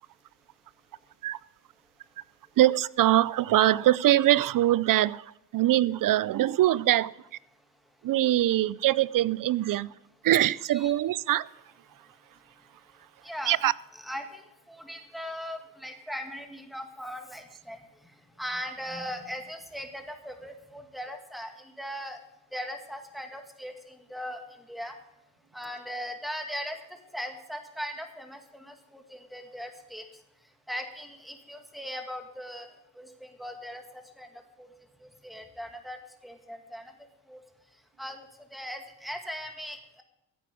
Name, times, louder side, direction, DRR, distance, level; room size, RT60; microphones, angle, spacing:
voice 1, 2.6-7.1 8.0-9.9 10.2-11.5 13.5-13.7, right 14 dB, 75° right, 0.5 m, -23 dB
voice 2, 13.2-13.6 14.0-22.2 22.5-25.0 25.5-30.1 30.7-34.7 35.0-36.9 37.3-37.4 38.0-40.0, equal, ahead, 2.0 m, -39 dB
15.0 x 8.7 x 5.1 m
cardioid pair, 85°, 33 cm